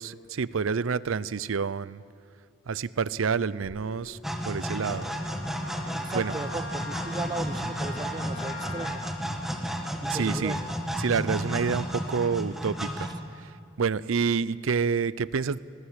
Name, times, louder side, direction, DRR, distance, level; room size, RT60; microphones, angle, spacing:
voice 1, 0.0-2.0 2.7-4.2 4.5-5.1 6.1-6.3 10.1-10.6 11.0-13.1 13.4-13.5 13.8-15.6, right 5 dB, 80° right, 19 dB, 0.5 m, -28 dB
sound 1, 3.6-13.0, left 4 dB, 90° left, 7.6 m, -55 dB
sound 2, 4.2-13.5, equal, ahead, 1.6 m, -33 dB
Wind instrument woodwind instrument, 4.7-9.0, left 3 dB, 65° left, 2.9 m, -42 dB
voice 2, 5.9-9.1 10.0-10.7, right 2 dB, 20° right, 16 dB, 0.5 m, -36 dB
20.5 x 19.0 x 8.1 m, 2.5 s
head